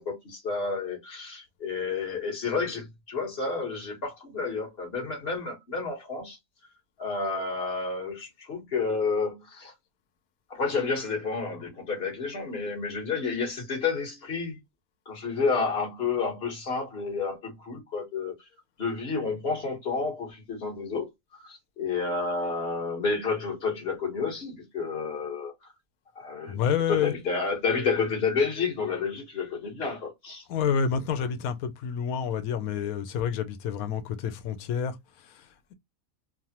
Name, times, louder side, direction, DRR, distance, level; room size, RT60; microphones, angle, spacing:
voice 1, 0.0-6.4 7.0-9.7 10.5-14.6 15.1-18.3 18.8-21.1 21.4-25.5 26.1-26.6 26.9-30.4, left 4 dB, 45° left, 1.5 m, -30 dB
voice 2, 26.5-27.1 30.5-35.7, left 7 dB, 90° left, 1.0 m, -29 dB
3.2 x 2.1 x 2.8 m
omnidirectional pair, 1.4 m